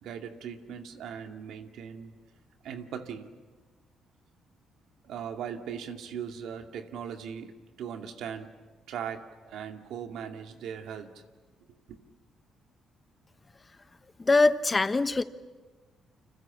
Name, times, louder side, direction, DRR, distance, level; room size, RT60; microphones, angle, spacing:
voice 1, 0.0-2.1 2.6-3.3 5.0-7.5 7.8-8.5 8.9-11.2 11.9-12.0, right 8 dB, 80° right, 5 dB, 2.2 m, -39 dB
voice 2, 14.2-15.2, left 3 dB, 25° left, 11 dB, 1.2 m, -23 dB
29.5 x 26.0 x 7.3 m, 1.3 s
cardioid pair, 90°, 0 cm